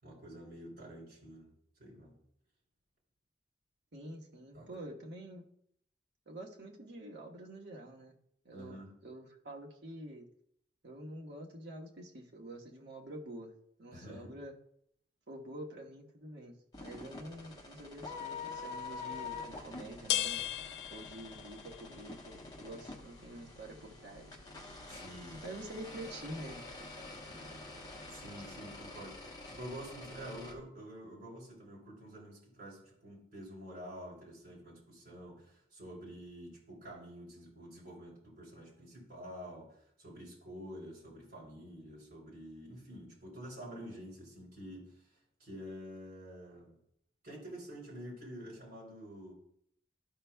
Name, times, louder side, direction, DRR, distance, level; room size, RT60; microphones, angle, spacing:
voice 1, 0.0-1.5 1.8-2.2 4.5-4.7 8.5-8.9 13.9-14.3 24.9-25.4 27.3-27.7 28.1-44.9 45.4-46.8 47.2-49.3, equal, 55° right, -5 dB, 3.4 m, -48 dB
voice 2, 3.9-5.4 6.3-8.1 8.4-10.3 10.8-13.5 13.8-14.5 15.3-20.4 20.9-24.4 25.3-26.6, right 1 dB, 85° right, -1 dB, 1.3 m, -47 dB
sound 1, 16.7-30.5, left 3 dB, 25° left, 1.1 m, -47 dB
sound 2, 19.1-30.6, left 12 dB, 80° left, 0.3 m, -44 dB
13.0 x 5.4 x 2.3 m, 0.70 s
head